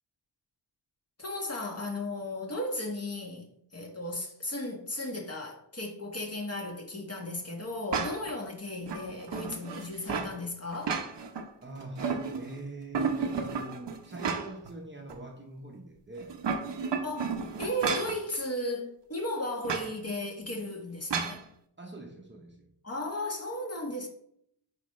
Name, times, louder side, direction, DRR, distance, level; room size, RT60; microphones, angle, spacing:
voice 1, 1.2-11.0 17.0-17.3 17.6-21.4 22.8-24.1, left 1 dB, 30° left, 1.6 m, -35 dB
sound 1, 7.9-8.4 8.9-10.3 10.7-11.5 11.8-12.6 12.9-14.7 15.1-15.2 16.2-18.2 19.6-19.9 21.1-21.4, right 5 dB, 60° right, 0.9 m, -32 dB
voice 2, 11.6-16.4 21.8-22.7, right 2 dB, 20° right, 0.9 m, -44 dB
9.2 x 4.9 x 3.2 m
wide cardioid pair, 145°, 50 cm